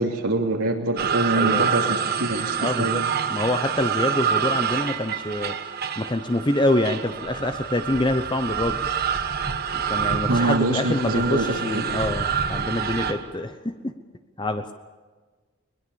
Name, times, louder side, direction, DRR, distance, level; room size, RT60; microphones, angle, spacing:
voice 1, 0.0-3.1 10.3-11.8, right 2 dB, 90° right, -1 dB, 2.9 m, -25 dB
sound 1, 1.0-13.3, right 7 dB, 45° right, 1.2 m, -27 dB
voice 2, 1.3-1.7 2.6-3.0 3.3-5.5 6.0-8.8 9.7-13.9 14.4-14.7, left 1 dB, 20° left, 8 dB, 0.8 m, -26 dB
21.0 x 21.0 x 7.1 m, 1.4 s
head